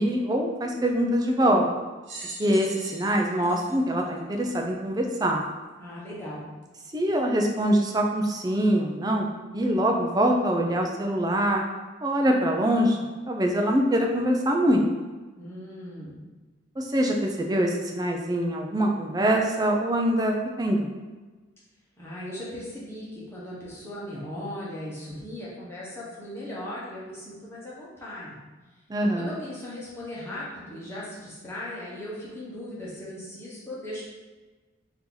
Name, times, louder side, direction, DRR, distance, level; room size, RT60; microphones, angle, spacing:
voice 1, 0.0-1.7 2.4-5.4 6.9-11.6 12.0-13.0 13.3-14.8 16.8-20.9 28.9-29.3, right 1 dB, 20° right, 2 dB, 0.4 m, -24 dB
sound 1, 2.0-4.7 5.4-5.5 6.6-6.7, right 2 dB, 70° right, 0.9 m, -42 dB
voice 2, 5.8-6.4 15.4-16.2 22.0-28.4 29.1-34.1, left 1 dB, 10° left, -8 dB, 1.1 m, -38 dB
4.3 x 2.7 x 3.8 m, 1.3 s
head